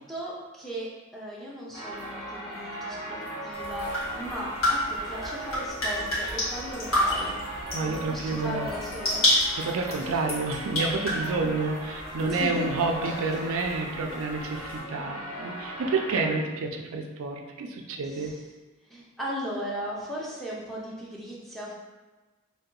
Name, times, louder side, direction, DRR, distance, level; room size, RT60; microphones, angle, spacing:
voice 1, 0.1-7.4 7.8-9.2 12.3-12.9 18.0-18.4 18.9-21.7, equal, ahead, -6 dB, 0.5 m, -37 dB
sound 1, 1.7-16.3, right 1 dB, 40° left, 1.4 m, -38 dB
sound 2, 3.5-14.8, left 1 dB, 70° left, 1.2 m, -31 dB
voice 2, 7.7-8.8 9.6-18.3, right 3 dB, 70° right, 3 dB, 0.4 m, -29 dB
2.7 x 2.2 x 3.7 m, 1.2 s
head